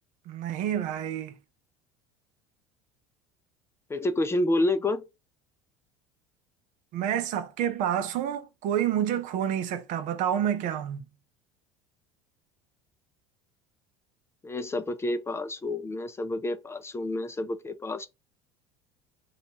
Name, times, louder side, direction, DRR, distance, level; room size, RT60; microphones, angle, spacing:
voice 1, 0.3-1.3 6.9-11.0, right 10 dB, 60° right, 0.6 m, -28 dB
voice 2, 3.9-5.0 14.4-18.1, left 2 dB, 15° left, 0.4 m, -29 dB
2.8 x 2.3 x 4.1 m
hypercardioid pair, 80°, 15 cm